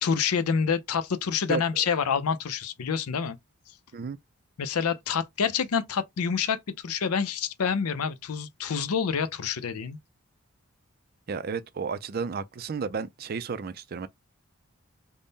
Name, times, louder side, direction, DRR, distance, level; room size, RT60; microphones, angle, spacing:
voice 1, 0.0-3.4 4.6-10.0, left 6 dB, 85° left, 0.5 m, -27 dB
voice 2, 11.3-14.1, right 5 dB, 45° right, 0.4 m, -32 dB
3.6 x 2.1 x 3.9 m
head